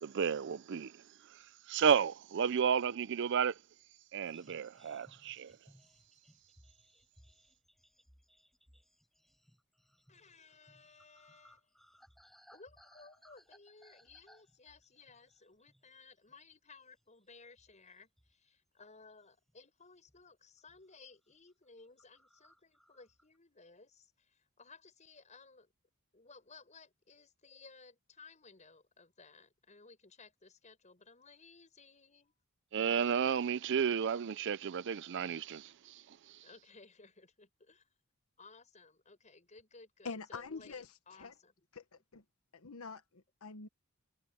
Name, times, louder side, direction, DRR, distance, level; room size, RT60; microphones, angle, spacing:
voice 1, 0.0-1.0 1.3-1.4 1.7-3.6 4.1-5.6 32.7-36.4, right 7 dB, 55° right, 0.4 m, -32 dB
sound 1, 4.2-16.0 16.3-16.5 17.0-18.5 18.8-19.6 20.1-20.3 20.6-21.0 21.3-21.4 21.6-21.7 22.0-23.4, equal, ahead, 7.6 m, -66 dB
voice 2, 10.1-11.7 12.5-25.7 26.1-32.3 36.4-37.9 38.4-41.7, left 4 dB, 35° left, 6.4 m, -59 dB
voice 3, 40.0-40.9 41.2-41.3 41.7-41.8 42.1-42.2 42.5-43.7, left 4 dB, 90° left, 1.1 m, -45 dB
head